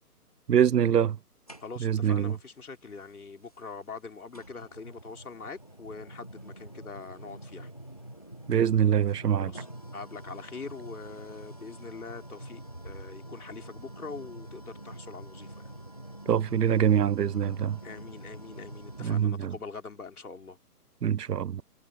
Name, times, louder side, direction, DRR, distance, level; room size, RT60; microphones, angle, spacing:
voice 1, 0.5-1.2 1.8-2.3 8.5-9.5 16.3-17.8 19.0-19.5 21.0-21.6, right 9 dB, 90° right, 0.6 m, -24 dB
sound 1, 1.5-2.1 3.5-3.6 4.3-19.3, right 1 dB, 25° left, 0.4 m, -46 dB
voice 2, 1.6-7.7 9.4-9.7 9.9-15.5 17.8-20.6, left 4 dB, 70° left, 4.6 m, -43 dB
figure-of-eight pair, 145°, 46 cm